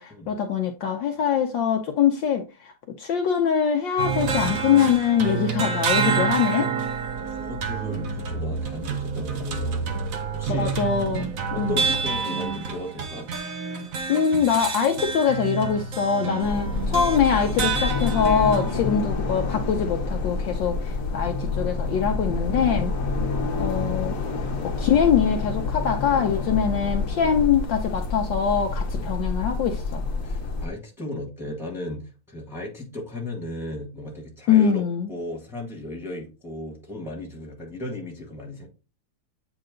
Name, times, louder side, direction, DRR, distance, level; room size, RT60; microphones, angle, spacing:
voice 1, 0.0-2.7 3.0-6.7 10.5-11.3 11.6-11.8 14.1-22.9 23.6-24.3 24.6-30.0 34.5-35.1, left 7 dB, 70° left, 1.2 m, -23 dB
sound 1, 4.0-18.7, right 5 dB, 55° right, 1.0 m, -28 dB
sound 2, 6.8-12.1, right 6 dB, 75° right, 1.4 m, -39 dB
voice 2, 7.1-9.8 10.3-10.7 11.5-13.3 23.0-23.2 28.9-29.2 30.2-34.8 35.1-38.7, left 1 dB, ahead, 1.4 m, -35 dB
sound 3, 16.4-30.7, left 3 dB, 50° left, 1.1 m, -28 dB
8.7 x 3.0 x 3.7 m
omnidirectional pair, 2.4 m